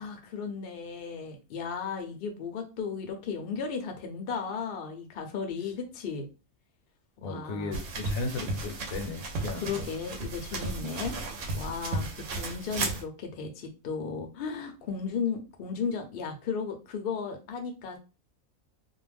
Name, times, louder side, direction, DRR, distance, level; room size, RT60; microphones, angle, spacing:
voice 1, 0.0-6.3 7.2-7.8 9.5-11.2 11.5-18.0, left 5 dB, 60° left, 0.6 m, -35 dB
voice 2, 7.2-9.8, left 3 dB, 80° left, 1.1 m, -36 dB
sound 1, 7.7-13.0, right 2 dB, 70° right, 0.9 m, -34 dB
2.5 x 2.1 x 3.3 m
omnidirectional pair, 1.4 m